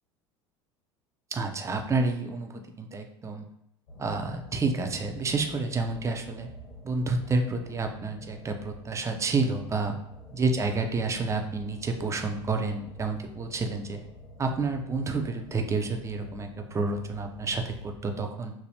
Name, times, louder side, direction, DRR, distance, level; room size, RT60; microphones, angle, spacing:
voice 1, 1.3-3.4 4.0-6.5 6.8-10.0 10.3-14.0 14.4-18.5, right 3 dB, 20° right, 5 dB, 0.5 m, -29 dB
sound 1, 3.9-17.9, left 1 dB, 65° left, 1.3 m, -47 dB
3.3 x 2.0 x 2.7 m, 0.82 s
hypercardioid pair, 80°, 14 cm